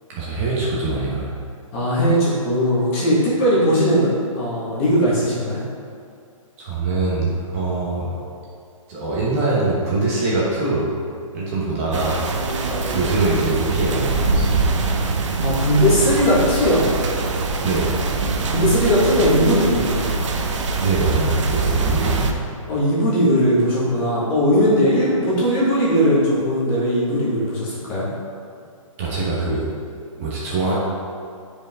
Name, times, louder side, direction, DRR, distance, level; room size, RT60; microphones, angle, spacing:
voice 1, 0.1-1.3 6.6-8.1 8.9-10.9 11.3-12.2 12.9-14.6 17.6-17.9 20.8-22.4 29.0-29.7 30.2-30.8, right 3 dB, 25° right, -6 dB, 1.2 m, -23 dB
voice 2, 1.7-4.1 4.3-5.6 15.4-16.8 18.5-20.1 22.7-28.1, equal, 25° left, -7 dB, 1.7 m, -19 dB
sound 1, 11.9-22.3, right 3 dB, 60° right, 0.8 m, -23 dB
8.2 x 5.0 x 3.6 m, 2.4 s
hypercardioid pair, 170°, 18 cm